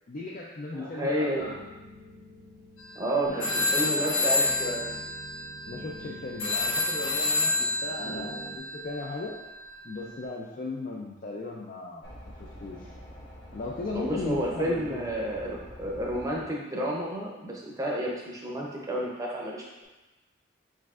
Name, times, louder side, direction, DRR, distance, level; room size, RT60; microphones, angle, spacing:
voice 1, 0.1-1.6 3.2-5.1 5.7-9.3 9.8-12.0 12.4-12.9 13.5-15.0, left 2 dB, 40° left, -3 dB, 0.4 m, -37 dB
voice 2, 0.7-1.5 3.0-4.9 8.0-8.3 13.8-19.6, right 1 dB, 15° right, -3 dB, 0.6 m, -31 dB
sound 1, 1.4-8.6, right 1 dB, 75° right, 0.6 m, -47 dB
sound 2, 2.8-3.0 3.4-10.1, left 2 dB, 85° left, 0.8 m, -29 dB
sound 3, 12.0-16.4, equal, 55° left, 1.4 m, -46 dB
4.8 x 4.2 x 2.4 m, 1.1 s
head